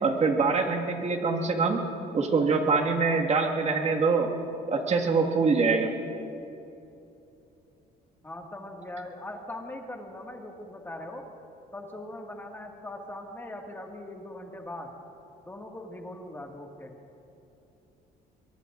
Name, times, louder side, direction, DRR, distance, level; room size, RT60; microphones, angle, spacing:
voice 1, 0.0-1.8 2.1-4.3 4.7-5.9, right 4 dB, 40° right, 2 dB, 2.0 m, -24 dB
voice 2, 8.2-11.3 11.7-14.9 15.5-17.0, left 1 dB, 15° left, 1 dB, 2.0 m, -40 dB
23.5 x 23.0 x 2.6 m, 2.9 s
cardioid pair, 110°, 17 cm